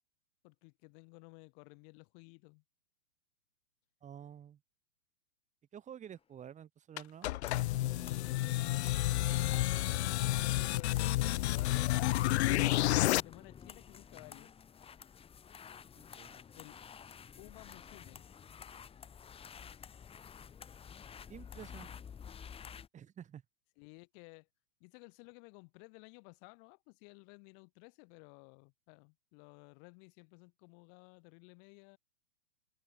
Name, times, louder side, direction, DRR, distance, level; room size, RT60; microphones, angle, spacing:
voice 1, 0.4-2.6 9.4-14.5 16.5-16.8 17.4-18.2 23.8-24.5 24.8-32.0, left 40 dB or more, 40° left, 7.6 m, -56 dB
voice 2, 4.0-4.6 5.7-7.3 16.0-16.4 21.3-21.9 22.9-23.4, right 9 dB, 20° right, 4.1 m, -50 dB
sound 1, 7.0-13.2, left 16 dB, 55° left, 1.0 m, -30 dB
sound 2, 7.5-22.9, left 7 dB, 15° left, 2.7 m, -52 dB
hypercardioid pair, 145°, 38 cm